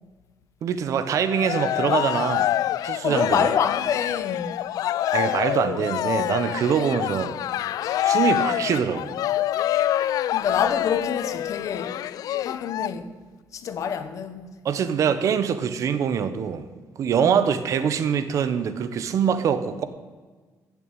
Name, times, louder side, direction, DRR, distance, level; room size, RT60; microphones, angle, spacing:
voice 1, 0.6-2.5 2.8-3.5 5.1-7.4 8.0-9.1 14.6-16.7 17.0-19.8, right 7 dB, 55° right, 1.0 m, -24 dB
Cheering, 1.1-12.9, left 12 dB, 70° left, 0.4 m, -26 dB
voice 2, 3.0-4.7 10.3-12.0 12.4-13.1 13.5-14.5 17.2-17.4, left 7 dB, 55° left, 1.1 m, -26 dB
15.0 x 7.1 x 8.9 m
cardioid pair, 170°, 7 cm